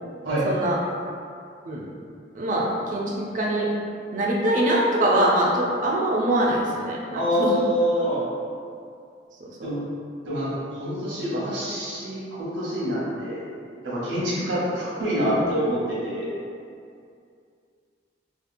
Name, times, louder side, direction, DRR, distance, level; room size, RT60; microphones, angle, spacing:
voice 1, 0.4-0.8 1.7-1.9 2.4-3.7 4.1-7.6 9.4-9.7 15.3-15.4, right 1 dB, 45° right, -2 dB, 0.4 m, -23 dB
voice 2, 7.0-8.2 9.6-9.8 10.2-13.4 13.8-16.3, equal, 75° right, -8 dB, 0.9 m, -26 dB
2.7 x 2.3 x 2.5 m, 2.4 s
head